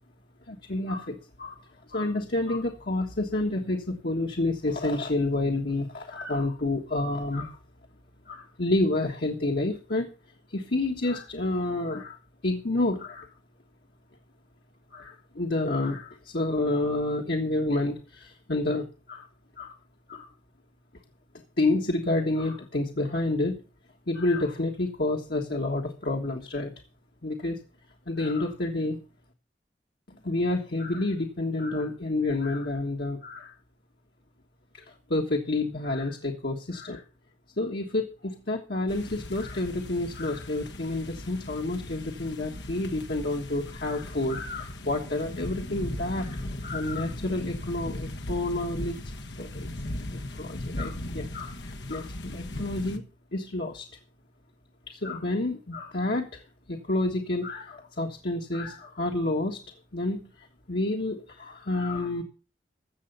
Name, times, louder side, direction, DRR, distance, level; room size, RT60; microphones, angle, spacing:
voice 1, 0.5-1.5 1.9-7.6 8.3-10.1 10.5-12.2 12.4-13.3 14.9-19.3 19.6-19.8 20.1-20.3 21.6-23.6 24.1-26.7 27.2-27.6 28.1-29.0 30.2-33.5 34.7-37.0 37.6-49.0 49.4-49.7 50.1-53.0 53.3-53.9 54.9-56.4 56.7-59.6 59.9-60.3 60.7-62.2, left 2 dB, 65° left, 1 dB, 1.5 m, -29 dB
sound 1, 38.9-53.0, left 1 dB, 85° left, 1.4 m, -38 dB
15.0 x 7.0 x 5.5 m, 0.35 s
head